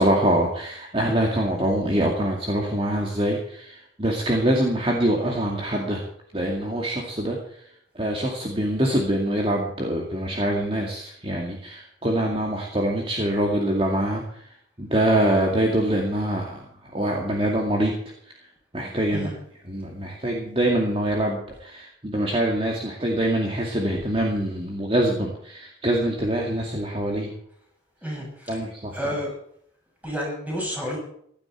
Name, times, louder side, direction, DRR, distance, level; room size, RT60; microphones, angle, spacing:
voice 1, 0.0-6.0 6.3-17.9 18.2-18.3 18.7-19.3 19.6-27.3 28.5-29.1, right 1 dB, 30° right, 0 dB, 2.3 m, -24 dB
voice 2, 28.0-28.6 28.9-29.3 30.0-31.0, equal, 10° right, -2 dB, 7.1 m, -30 dB
16.0 x 12.5 x 4.6 m, 0.67 s
head